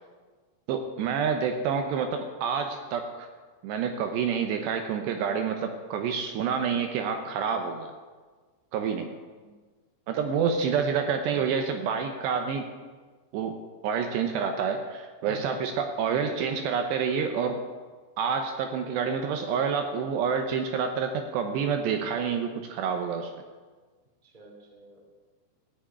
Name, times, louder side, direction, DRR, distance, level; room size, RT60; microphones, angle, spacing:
voice 1, 0.7-3.3 3.6-7.9 8.7-9.1 10.1-12.7 13.3-13.6 13.8-17.6 18.2-23.3, right 6 dB, 75° right, 5 dB, 2.8 m, -28 dB
voice 2, 15.2-15.7 24.2-25.0, right 1 dB, 15° right, -1 dB, 1.9 m, -49 dB
14.5 x 6.2 x 9.5 m, 1.4 s
omnidirectional pair, 5.3 m